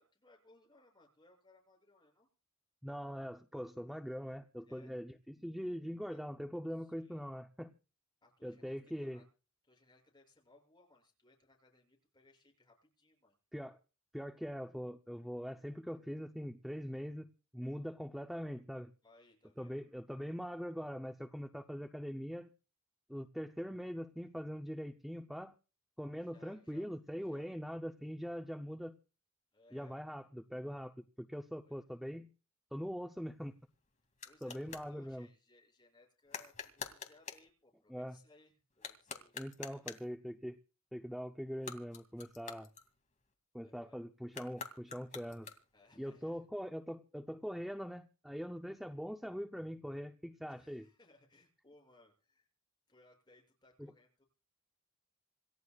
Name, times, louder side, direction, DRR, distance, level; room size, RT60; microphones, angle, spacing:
voice 1, 0.0-2.3 4.7-4.9 6.1-6.2 6.8-7.2 8.2-9.3 9.6-13.4 19.0-19.8 26.2-26.9 27.2-27.5 29.5-30.3 31.6-31.8 34.2-39.8 42.6-42.7 43.6-44.1 45.7-46.4 50.5-52.5 52.9-54.2, left 2 dB, 20° left, 7.3 m, -66 dB
voice 2, 2.8-7.7 8.4-9.2 13.5-13.8 14.1-18.9 19.6-22.5 23.1-25.5 26.0-29.0 29.7-32.3 32.7-33.5 34.4-35.3 37.9-38.2 39.3-40.6 40.9-42.7 43.5-45.5 46.0-50.8 53.8-53.9, equal, ahead, 0.7 m, -42 dB
sound 1, 33.2-34.9 36.3-37.5 38.7-40.2 41.5-43.3 44.3-45.9, left 5 dB, 35° left, 2.6 m, -48 dB
27.5 x 14.5 x 2.4 m
head